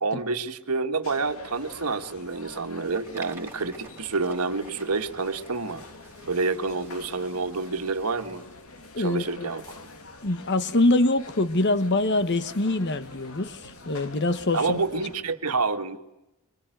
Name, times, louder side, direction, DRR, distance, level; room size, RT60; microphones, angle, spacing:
voice 1, 0.0-5.8 6.3-8.4 9.0-9.8 14.5-16.0, right 4 dB, 85° right, 1.7 m, -28 dB
sound 1, 1.0-15.2, left 2 dB, 70° left, 2.6 m, -46 dB
sound 2, 2.5-9.6, right 3 dB, 10° right, 3.5 m, -51 dB
voice 2, 8.9-9.5 10.2-14.8, left 2 dB, 50° left, 1.3 m, -24 dB
25.0 x 24.0 x 9.2 m
head